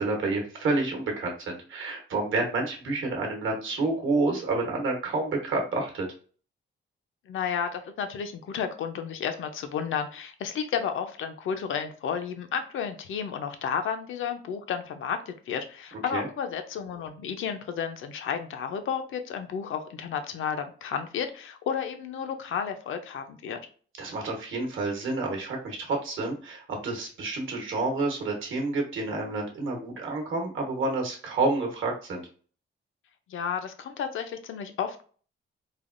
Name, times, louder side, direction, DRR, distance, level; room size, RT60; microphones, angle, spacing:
voice 1, 0.0-6.1 16.1-16.3 24.0-32.3, right 3 dB, 70° right, 1 dB, 1.0 m, -29 dB
voice 2, 7.3-23.6 33.3-35.0, left 7 dB, 70° left, 7 dB, 0.5 m, -32 dB
3.3 x 2.2 x 2.4 m, 0.42 s
wide cardioid pair, 150°, 21 cm